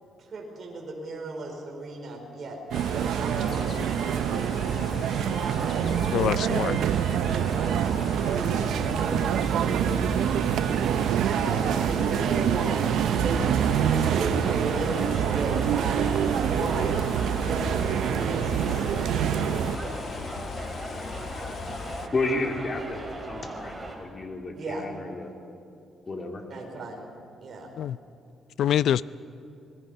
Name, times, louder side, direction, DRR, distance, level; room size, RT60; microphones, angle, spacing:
voice 1, 0.3-4.5 5.2-6.8 7.3-10.0 11.2-17.1 17.4-20.0 24.5-24.9 26.5-27.1 27.4-27.7, right 2 dB, 50° right, 0 dB, 4.8 m, -36 dB
sound 1, 2.7-22.1, left 5 dB, 55° left, 1.3 m, -37 dB
sound 2, 2.7-19.8, right 10 dB, 80° right, 0.5 m, -26 dB
voice 2, 6.1-6.8 27.8-28.0 28.6-29.0, left 10 dB, 70° left, 18 dB, 0.4 m, -24 dB
sound 3, 13.3-24.0, right 2 dB, 20° right, 4.1 m, -39 dB
voice 3, 22.1-25.3 26.1-26.4, left 2 dB, 35° left, 3 dB, 2.5 m, -31 dB
26.0 x 20.5 x 5.6 m, 2.6 s
cardioid pair, 90°, 0 cm